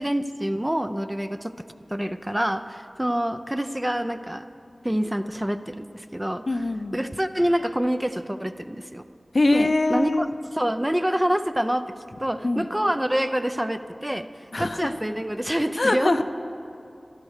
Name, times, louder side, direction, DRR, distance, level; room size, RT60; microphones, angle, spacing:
voice 1, 0.0-1.5 1.9-4.4 4.8-6.6 6.9-9.0 9.5-10.3 10.5-11.9 12.2-14.3 14.6-16.1, equal, 15° right, 9 dB, 0.6 m, -26 dB
voice 2, 6.5-7.0 9.3-10.3 12.4-12.7 14.5-14.8 15.8-16.2, left 2 dB, 65° left, 8 dB, 0.6 m, -22 dB
13.5 x 11.0 x 6.5 m, 2.5 s
wide cardioid pair, 40°, 0 cm